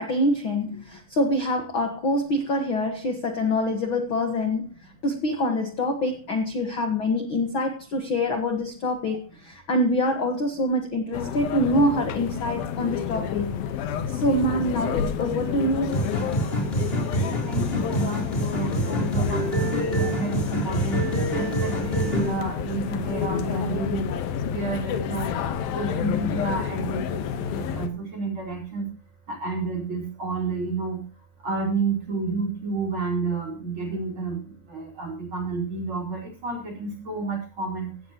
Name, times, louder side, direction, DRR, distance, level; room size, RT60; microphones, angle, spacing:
voice 1, 0.0-4.7 5.0-13.6 14.1-16.1, left 1 dB, 50° left, 1.8 m, -25 dB
sound 1, 11.1-27.9, left 8 dB, 90° left, 3.1 m, -30 dB
sound 2, 15.9-22.3, right 2 dB, 15° left, 3.7 m, -27 dB
voice 2, 17.3-21.0 21.3-24.1 24.5-25.3 25.7-28.9 29.3-31.0 31.4-37.9, right 3 dB, 35° right, 5.1 m, -30 dB
17.0 x 15.5 x 3.0 m
omnidirectional pair, 4.0 m